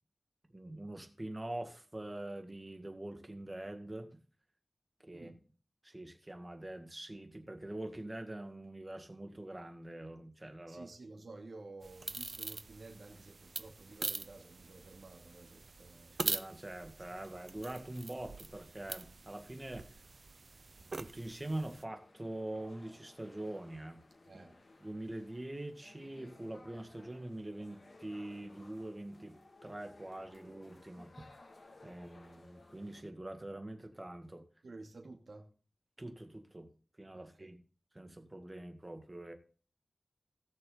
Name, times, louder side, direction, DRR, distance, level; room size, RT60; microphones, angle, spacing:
voice 1, 0.5-4.1 5.0-5.3 5.8-10.9 16.2-20.0 20.9-24.0 24.3-24.5 24.8-31.4 31.8-34.4 36.0-36.7 37.0-37.6 37.9-39.3, right 1 dB, 25° right, 2.0 m, -44 dB
voice 2, 10.7-16.2 24.2-24.6 34.6-35.5 37.1-37.5, right 3 dB, 80° right, 2.6 m, -52 dB
sound 1, 11.8-21.8, right 3 dB, 60° right, 0.7 m, -43 dB
sound 2, 21.8-33.0, left 2 dB, 55° left, 2.2 m, -60 dB
18.5 x 6.6 x 3.9 m
wide cardioid pair, 90°, 0 cm